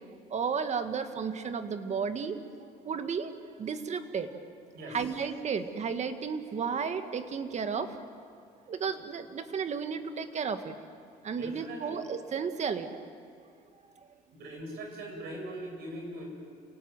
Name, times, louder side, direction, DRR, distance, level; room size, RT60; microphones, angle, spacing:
voice 1, 0.3-2.4 2.8-3.3 3.6-4.3 4.9-8.0 8.7-10.7 11.2-13.0, right 6 dB, 40° right, 9 dB, 1.7 m, -33 dB
voice 2, 11.3-12.0 14.3-16.2, right 1 dB, 70° right, 1 dB, 7.8 m, -41 dB
29.0 x 18.5 x 7.9 m, 2.4 s
cardioid pair, 110°, 17 cm